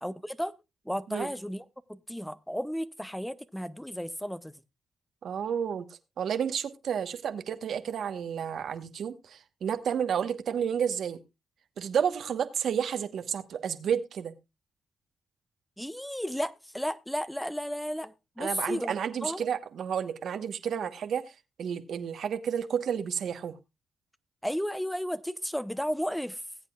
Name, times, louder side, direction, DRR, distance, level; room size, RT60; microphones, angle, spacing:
voice 1, 0.0-0.5 0.9-4.5 15.8-19.4 24.4-26.4, equal, 5° left, 0.7 m, -33 dB
voice 2, 5.2-5.9 6.2-11.2 11.8-14.3 18.4-21.2 21.6-23.5, right 8 dB, 70° right, 1.1 m, -31 dB
19.5 x 8.2 x 2.3 m
supercardioid pair, 60°, 0 cm